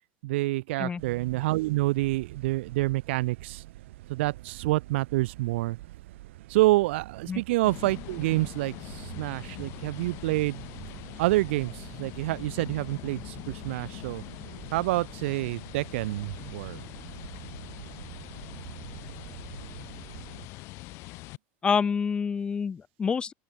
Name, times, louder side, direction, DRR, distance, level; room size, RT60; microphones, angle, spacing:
voice 1, 0.2-3.6 4.1-5.8 6.5-10.6 11.2-14.2 14.7-16.8, right 19 dB, 75° right, 1.4 m, -27 dB
sound 1, 1.0-20.5, right 17 dB, 90° right, 4.7 m, -46 dB
sound 2, 7.6-21.4, left 22 dB, 45° left, 3.1 m, -43 dB
voice 2, 21.6-23.3, left 6 dB, 15° left, 3.3 m, -27 dB
open air
supercardioid pair, 170°, 6 cm